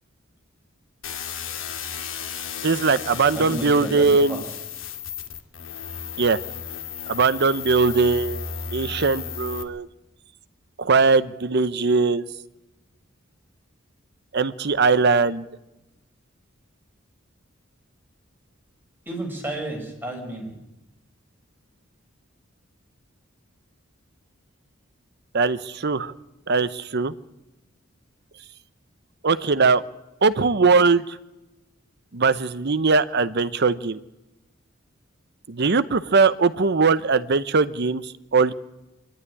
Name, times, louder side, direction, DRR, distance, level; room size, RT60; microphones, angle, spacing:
sound 1, 1.0-9.6, left 7 dB, 75° left, 2.2 m, -34 dB
voice 1, 2.6-4.4 6.2-6.4 7.1-9.9 10.8-12.2 14.3-15.5 25.3-26.1 26.5-27.1 29.2-29.8 30.2-31.2 32.1-34.0 35.5-38.5, right 4 dB, 55° right, 14 dB, 0.8 m, -20 dB
voice 2, 3.3-4.4 19.1-20.5, right 1 dB, 10° right, 1 dB, 5.7 m, -32 dB
24.0 x 12.0 x 9.8 m, 1.0 s
head